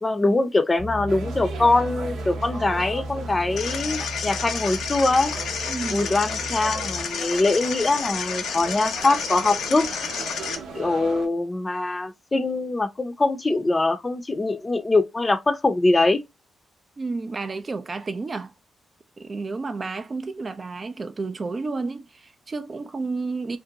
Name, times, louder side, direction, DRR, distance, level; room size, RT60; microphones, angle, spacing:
voice 1, 0.0-5.3 5.9-9.9 10.7-16.2, left 2 dB, 30° left, 0.5 m, -23 dB
Bass guitar, 0.8-7.0, equal, 25° right, 0.9 m, -35 dB
sound 1, 1.1-11.3, right 4 dB, 80° right, 0.7 m, -38 dB
sound 2, 3.6-10.6, left 6 dB, 75° left, 0.5 m, -30 dB
voice 2, 5.7-6.1 17.0-18.5 19.2-23.6, right 3 dB, 40° right, 0.4 m, -31 dB
2.5 x 2.1 x 2.7 m
supercardioid pair, 50°, 0 cm